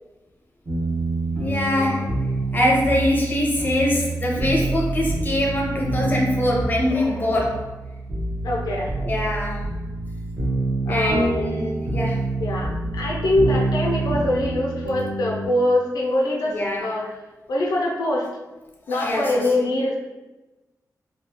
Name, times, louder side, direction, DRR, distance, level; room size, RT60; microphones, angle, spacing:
sound 1, 0.7-15.5, right 2 dB, 30° right, 1.0 m, -27 dB
voice 1, 1.4-2.3 2.5-7.7 9.0-9.7 10.9-12.2 16.4-16.9 18.9-19.5, left 1 dB, 25° left, -2 dB, 0.7 m, -23 dB
voice 2, 8.4-8.9 10.9-11.5 12.4-17.1 17.5-18.3 18.9-20.0, left 1 dB, 85° left, -2 dB, 0.5 m, -23 dB
3.7 x 2.3 x 2.9 m, 1.1 s
wide cardioid pair, 155°, 7 cm